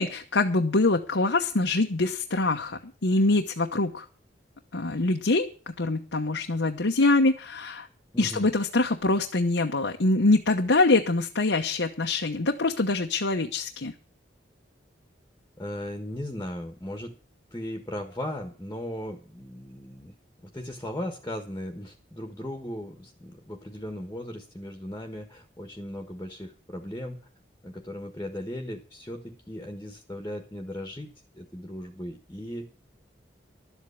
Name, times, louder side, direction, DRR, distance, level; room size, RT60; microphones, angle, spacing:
voice 1, 0.0-4.0 4.7-7.9 8.2-13.9, left 2 dB, 85° left, 3 dB, 1.0 m, -24 dB
voice 2, 8.1-8.5 15.6-17.1 17.5-20.1 20.4-27.2 27.6-32.7, left 1 dB, 15° left, 5 dB, 1.4 m, -37 dB
12.0 x 8.2 x 8.3 m, 0.38 s
head